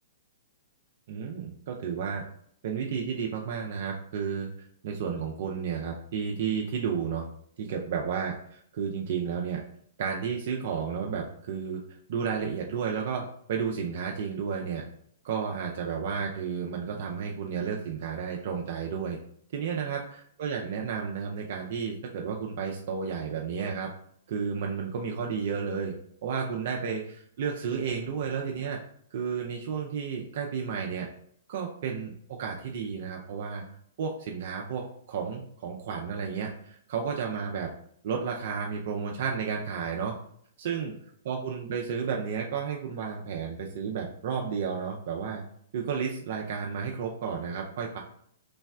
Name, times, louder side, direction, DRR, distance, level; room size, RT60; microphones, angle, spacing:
voice 1, 1.1-2.2 2.6-4.5 4.8-7.3 7.6-9.6 10.0-14.9 15.2-19.2 19.5-23.9 24.3-25.9 26.2-28.8 29.1-31.1 31.5-33.6 34.0-37.7 38.0-40.1 40.6-40.9 41.3-45.4 45.7-48.0, right 6 dB, 55° right, 0 dB, 0.4 m, -32 dB
3.3 x 2.1 x 3.4 m, 0.64 s
hypercardioid pair, 120°, 0 cm